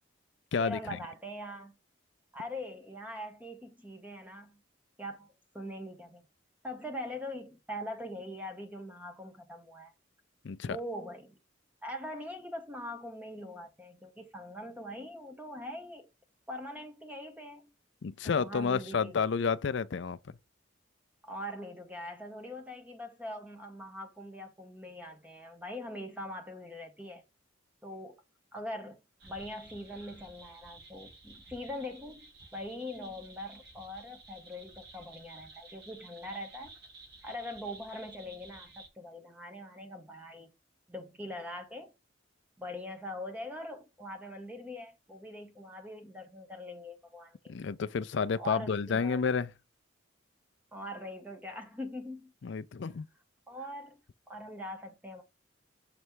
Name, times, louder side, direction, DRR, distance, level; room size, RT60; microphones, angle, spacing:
voice 1, 0.6-1.8 2.3-4.6 5.0-6.3 6.6-9.9 10.6-11.4 11.8-16.1 16.5-17.7 18.2-19.2 21.2-27.2 27.8-28.2 28.5-36.7 37.2-40.5 40.9-41.9 42.6-47.5 48.4-49.2 50.7-52.3 53.5-54.0 54.3-55.2, left 1 dB, 10° right, 1.0 m, -42 dB
voice 2, 10.4-10.8 18.0-20.4 47.5-49.5 52.4-53.1, left 5 dB, 65° left, 0.4 m, -30 dB
sound 1, 29.2-38.9, right 2 dB, 55° right, 1.4 m, -53 dB
6.8 x 3.2 x 4.5 m
head